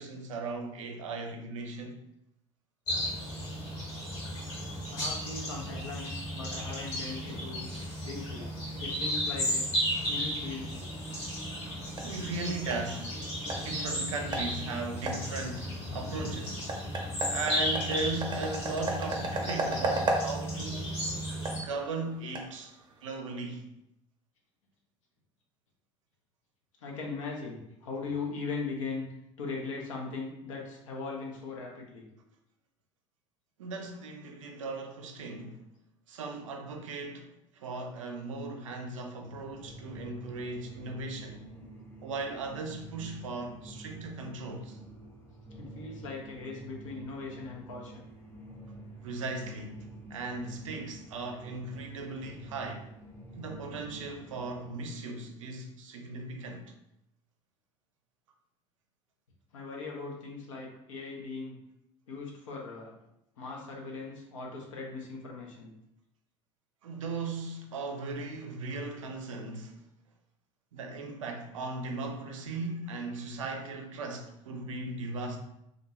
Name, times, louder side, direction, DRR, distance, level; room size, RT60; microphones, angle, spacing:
voice 1, 0.0-2.0 12.0-13.2 13.4-16.7 17.3-21.0 21.5-23.7 33.6-35.6 36.1-41.5 42.0-44.8 49.0-52.9 53.4-56.7 66.8-69.8 70.7-75.4, right 3 dB, 75° right, 0.4 m, -37 dB
sound 1, 2.9-21.6, equal, 60° left, 1.4 m, -34 dB
voice 2, 4.9-7.7 8.0-8.5 8.8-9.6 10.1-10.7 26.8-29.0 29.4-32.1 45.6-48.1 59.5-61.6 62.1-62.9 63.4-65.7, left 4 dB, 75° left, 0.6 m, -39 dB
sound 2, 11.3-23.1, right 2 dB, 30° right, 0.6 m, -37 dB
sound 3, 39.2-54.8, right 2 dB, 15° left, 0.7 m, -48 dB
2.5 x 2.2 x 2.9 m
figure-of-eight pair, 60°, 17 cm